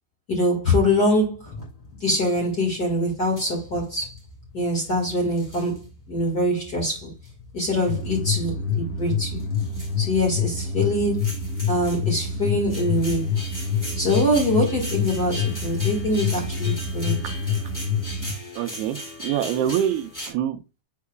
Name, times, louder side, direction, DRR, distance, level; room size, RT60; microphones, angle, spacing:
voice 1, 0.3-1.5 2.0-4.1 4.5-7.1 7.5-9.4 10.0-11.3 11.7-13.3 13.9-17.2, left 1 dB, 40° left, 1.5 m, -24 dB
sound 1, 0.8-20.3, equal, 5° left, 2.0 m, -40 dB
sound 2, 7.9-18.3, left 5 dB, 75° left, 4.2 m, -27 dB
voice 2, 18.6-20.8, right 10 dB, 85° right, 2.6 m, -26 dB
9.5 x 4.7 x 2.3 m
omnidirectional pair, 4.4 m